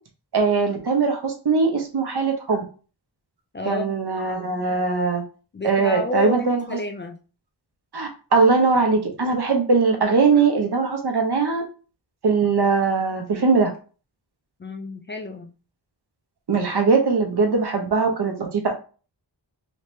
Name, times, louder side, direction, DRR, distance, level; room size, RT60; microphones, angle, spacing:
voice 1, 0.3-2.6 3.7-5.2 5.6-6.8 7.9-11.6 12.2-13.7 16.5-18.7, right 4 dB, 60° right, 3 dB, 0.9 m, -21 dB
voice 2, 3.5-3.9 5.5-7.2 14.6-15.5, left 2 dB, 25° left, 3 dB, 0.4 m, -30 dB
3.2 x 2.8 x 3.2 m, 0.37 s
wide cardioid pair, 95°, 44 cm